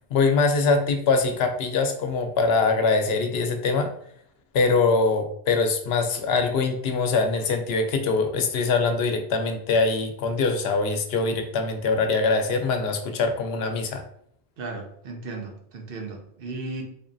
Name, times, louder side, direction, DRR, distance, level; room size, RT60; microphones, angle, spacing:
voice 1, 0.1-3.9 4.5-14.0, left 4 dB, 80° left, 6 dB, 0.8 m, -23 dB
voice 2, 14.6-16.8, right 3 dB, 65° right, 3 dB, 0.9 m, -35 dB
4.1 x 3.0 x 2.6 m, 0.66 s
omnidirectional pair, 1.0 m